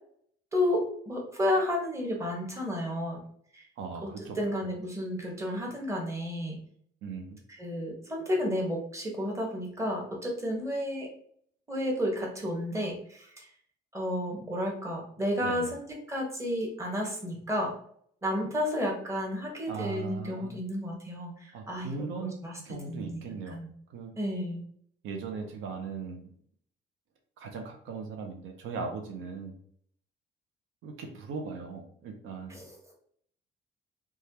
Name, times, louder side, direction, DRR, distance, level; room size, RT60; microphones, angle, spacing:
voice 1, 0.5-3.2 3.5-3.6 4.0-6.6 7.6-11.1 11.7-13.5 13.9-17.8 18.2-21.9 22.2-22.6 22.9-23.3 23.5-23.7 24.2-24.6 32.5-32.7, left 1 dB, 15° right, -1 dB, 1.1 m, -32 dB
voice 2, 3.8-4.4 7.0-7.4 15.4-15.7 19.7-20.5 21.5-23.6 23.9-24.2 25.0-26.3 27.4-29.5 30.8-32.5, right 5 dB, 85° right, 3 dB, 0.5 m, -38 dB
3.1 x 2.3 x 2.8 m, 0.62 s
cardioid pair, 90°, 20 cm